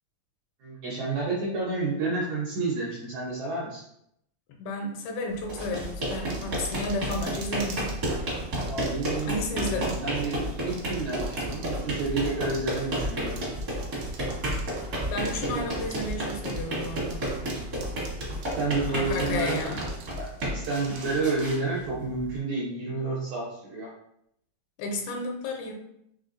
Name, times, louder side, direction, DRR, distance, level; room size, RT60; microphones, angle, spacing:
voice 1, 0.6-3.8 8.7-13.5 15.4-15.6 18.6-19.8 20.2-23.9, right 3 dB, 75° right, -5 dB, 1.7 m, -30 dB
voice 2, 4.6-7.9 9.3-10.0 15.1-17.4 18.9-19.9 24.8-25.7, left 2 dB, 80° left, 2 dB, 2.5 m, -32 dB
sound 1, 5.4-22.4, right 1 dB, 55° right, 0.9 m, -32 dB
sound 2, 6.3-8.1 8.5-9.2 9.6-10.0 10.2-10.3 10.7-11.7 12.0-14.7 15.2-15.4 15.9-16.6 16.8-17.5 17.8-18.7 19.1-21.4, right 5 dB, 90° right, 1.6 m, -44 dB
5.6 x 3.4 x 2.5 m, 0.75 s
omnidirectional pair, 4.3 m